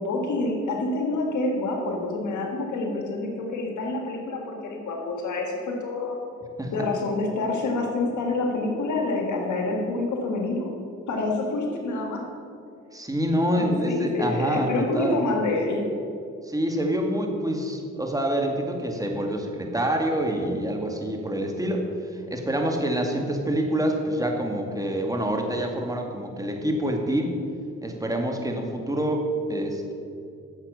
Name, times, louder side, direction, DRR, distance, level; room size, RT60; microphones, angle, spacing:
voice 1, 0.0-6.2 6.7-10.7 11.1-12.2 13.6-15.8, left 2 dB, 70° left, 1 dB, 1.9 m, -27 dB
voice 2, 12.9-15.2 16.5-21.9 22.3-27.4 27.8-29.9, right 1 dB, 10° right, 2 dB, 2.0 m, -26 dB
9.2 x 7.2 x 6.8 m, 2.5 s
supercardioid pair, 55°, 31 cm